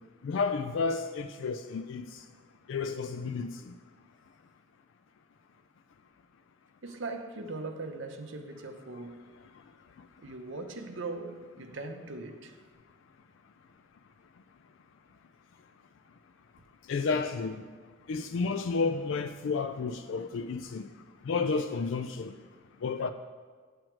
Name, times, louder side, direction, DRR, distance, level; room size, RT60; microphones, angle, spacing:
voice 1, 0.2-2.0 2.7-3.5 16.9-17.5 18.1-20.9 21.3-22.3 22.8-23.1, left 4 dB, 70° left, 0.4 m, -31 dB
voice 2, 6.8-9.3 10.2-12.5, right 3 dB, 65° right, 0.7 m, -40 dB
7.9 x 7.6 x 4.5 m
head